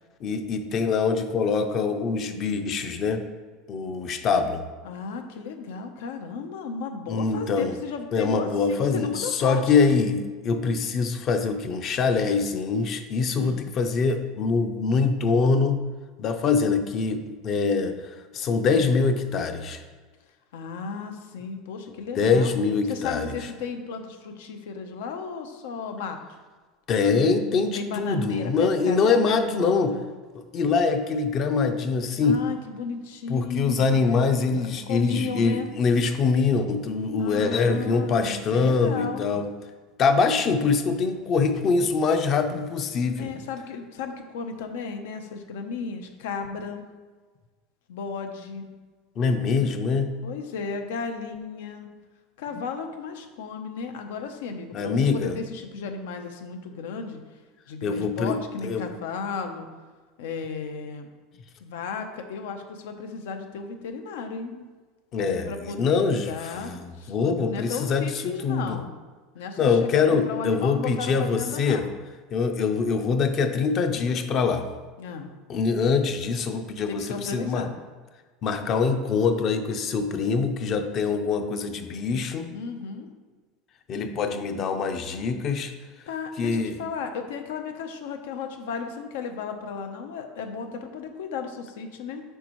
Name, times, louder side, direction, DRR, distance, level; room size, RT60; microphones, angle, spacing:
voice 1, 0.2-3.2 3.7-4.6 7.1-7.8 8.1-15.8 16.2-19.8 22.2-23.3 26.9-30.0 30.5-32.4 33.3-39.5 40.0-43.3 49.2-50.1 54.7-55.4 57.8-58.4 58.6-58.9 65.1-66.3 66.6-68.8 69.6-71.8 72.3-74.7 75.5-77.7 78.4-82.5 83.9-85.7 86.4-86.8, left 4 dB, 30° left, 7 dB, 0.5 m, -24 dB
voice 2, 4.8-9.9 13.3-13.6 20.5-22.5 22.9-26.4 27.7-30.0 32.2-34.2 34.6-35.7 37.2-39.2 43.2-46.8 47.9-48.6 50.2-51.9 52.4-57.2 57.7-59.7 60.2-61.1 61.6-64.7 65.2-66.7 67.0-67.1 67.5-68.9 69.3-71.9 75.0-75.3 76.9-77.7 82.5-83.1 86.1-92.2, left 5 dB, 85° left, 6 dB, 0.8 m, -34 dB
8.1 x 5.3 x 3.0 m, 1.4 s
supercardioid pair, 175°, 0 cm